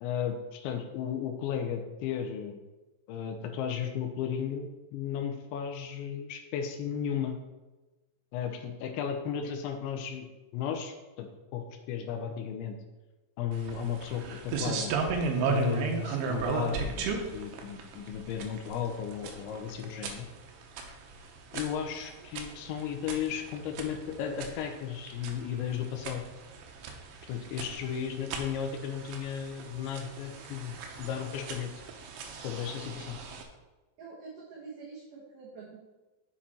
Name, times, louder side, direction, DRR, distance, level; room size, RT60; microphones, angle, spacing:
voice 1, 0.0-2.6 3.1-7.4 8.3-10.3 10.5-12.8 13.4-14.9 15.4-20.3 21.5-26.2 27.3-31.7 32.4-33.2, left 8 dB, 85° left, 5 dB, 3.0 m, -35 dB
sound 1, 13.5-33.4, right 5 dB, 85° right, 3.4 m, -36 dB
voice 2, 34.0-35.8, right 4 dB, 65° right, -5 dB, 2.1 m, -46 dB
7.5 x 7.4 x 4.3 m, 1.1 s
omnidirectional pair, 5.4 m